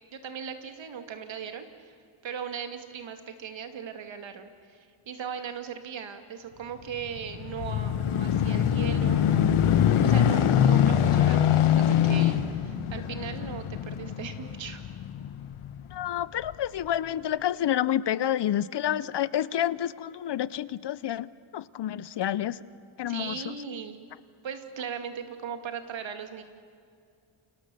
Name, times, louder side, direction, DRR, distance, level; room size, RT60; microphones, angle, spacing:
voice 1, 0.1-1.9 2.2-9.6 10.0-14.9 23.1-24.0 24.4-26.4, right 7 dB, 65° right, 7 dB, 2.2 m, -38 dB
sound 1, 7.0-15.8 16.4-16.5, left 9 dB, 80° left, 1.5 m, -24 dB
voice 2, 15.9-22.6 23.0-23.6, left 11 dB, 55° left, 18 dB, 0.7 m, -29 dB
29.0 x 29.0 x 6.9 m, 2.4 s
wide cardioid pair, 145°, 49 cm